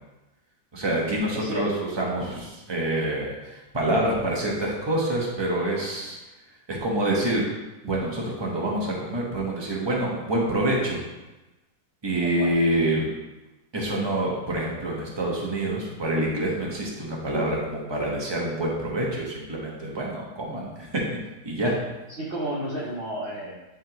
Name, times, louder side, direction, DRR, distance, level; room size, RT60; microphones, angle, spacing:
voice 1, 0.7-1.7 2.0-6.2 6.7-7.5 7.8-11.0 12.0-13.0 13.7-21.0 21.4-21.7, right 1 dB, 20° right, -3 dB, 0.9 m, -26 dB
voice 2, 1.3-2.1 12.2-12.5 22.1-23.6, right 1 dB, 55° right, -5 dB, 0.6 m, -32 dB
10.0 x 3.8 x 3.0 m, 1.1 s
omnidirectional pair, 2.1 m